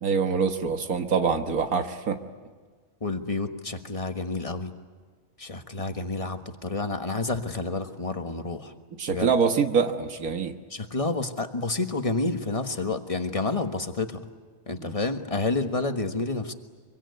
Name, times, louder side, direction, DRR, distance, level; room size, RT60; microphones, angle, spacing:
voice 1, 0.0-2.2 9.0-10.6 14.8-15.0, right 5 dB, 80° right, 6 dB, 1.8 m, -25 dB
voice 2, 3.0-4.7 5.4-8.7 9.1-9.3 10.7-14.2 14.7-16.5, left 3 dB, 25° left, 6 dB, 1.4 m, -29 dB
25.0 x 24.0 x 9.5 m, 1.5 s
omnidirectional pair, 1.5 m